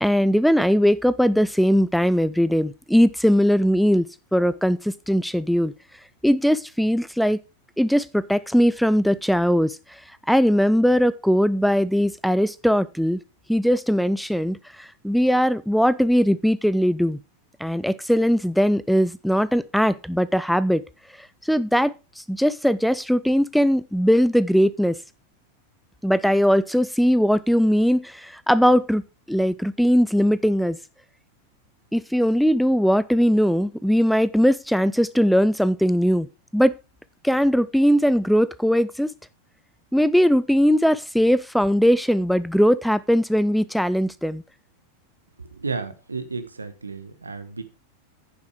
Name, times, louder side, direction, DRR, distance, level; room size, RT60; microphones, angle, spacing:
voice 1, 0.0-4.1 4.3-5.7 6.2-7.4 7.8-9.8 10.3-13.2 13.5-17.2 17.6-20.8 21.5-21.9 22.3-25.0 26.0-29.0 29.3-30.8 31.9-36.3 36.5-36.7 37.2-39.1 39.9-44.4, equal, ahead, 0.4 m, -20 dB
voice 2, 45.6-47.6, right 4 dB, 80° right, 1.3 m, -32 dB
9.7 x 7.1 x 4.8 m
figure-of-eight pair, 90°, 0 cm